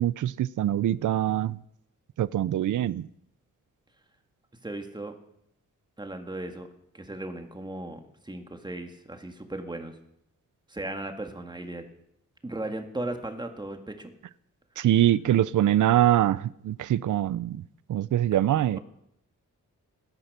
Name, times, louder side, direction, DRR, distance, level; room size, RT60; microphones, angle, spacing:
voice 1, 0.0-1.6 2.2-3.0 14.8-17.6 17.9-18.8, right 12 dB, 75° right, 0.5 m, -23 dB
voice 2, 4.6-5.1 6.0-6.7 6.9-10.0 10.7-11.9 12.4-14.1, right 2 dB, 15° right, 1.8 m, -36 dB
18.0 x 10.0 x 6.7 m
wide cardioid pair, 140°, 31 cm